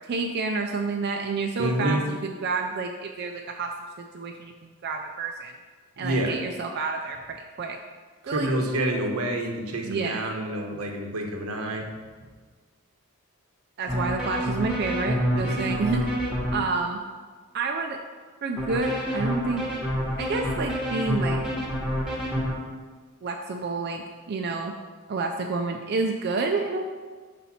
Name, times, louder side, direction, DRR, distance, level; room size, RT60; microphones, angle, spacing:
voice 1, 0.1-3.7 4.0-5.5 6.0-7.8 8.3-8.5 9.8-10.2 13.8-16.1 16.5-17.0 17.5-18.0 18.4-19.7 20.2-21.4 23.2-24.7 25.1-26.8, right 4 dB, 50° right, 3 dB, 0.4 m, -29 dB
voice 2, 1.6-2.0 6.0-6.4 8.2-11.8 15.3-15.6, right 1 dB, 85° right, 2 dB, 0.9 m, -28 dB
sound 1, 13.9-16.5 18.6-22.5, equal, 5° right, 1.0 m, -27 dB
5.1 x 4.2 x 5.7 m, 1.5 s
head